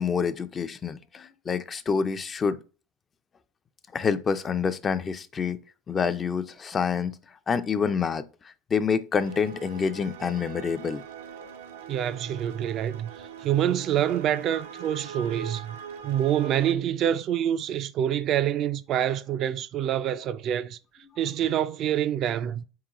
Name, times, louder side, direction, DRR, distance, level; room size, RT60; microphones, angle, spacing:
voice 1, 0.0-2.6 3.9-5.6 5.9-7.1 7.5-8.2 8.7-11.0, left 6 dB, 25° left, 0.4 m, -27 dB
sound 1, 9.2-16.7, right 7 dB, 90° right, 0.6 m, -42 dB
voice 2, 11.9-15.8 16.0-20.8 21.2-22.6, right 10 dB, 45° right, 0.3 m, -26 dB
4.2 x 3.7 x 2.9 m
supercardioid pair, 115°, 0 cm